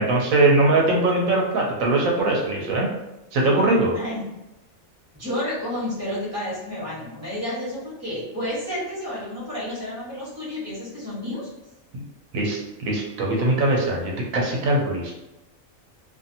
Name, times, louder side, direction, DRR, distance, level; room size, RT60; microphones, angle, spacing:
voice 1, 0.0-2.9 3.3-3.9 11.9-12.0 12.3-15.1, right 2 dB, 80° right, -1 dB, 1.0 m, -21 dB
voice 2, 3.9-4.3 5.1-11.5, left 1 dB, 10° right, -7 dB, 1.0 m, -30 dB
2.6 x 2.5 x 2.7 m, 0.95 s
omnidirectional pair, 1.4 m